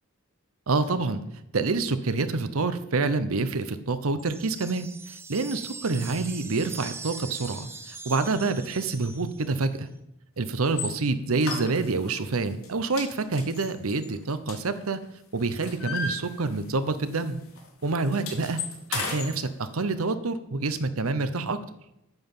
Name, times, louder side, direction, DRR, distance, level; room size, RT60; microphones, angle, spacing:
voice 1, 0.7-1.2 1.5-9.9 10.4-15.0 15.3-17.4 17.8-18.6 18.9-21.6, right 3 dB, 80° right, 12 dB, 0.8 m, -27 dB
sound 1, 4.2-9.7, right 4 dB, 10° right, 0.6 m, -42 dB
sound 2, 10.7-10.9 11.4-12.1 12.5-12.7 13.0-15.0 15.4-16.8 17.1-17.3 17.6-19.3, left 4 dB, 70° left, 2.4 m, -34 dB
9.1 x 5.9 x 7.3 m, 0.84 s
head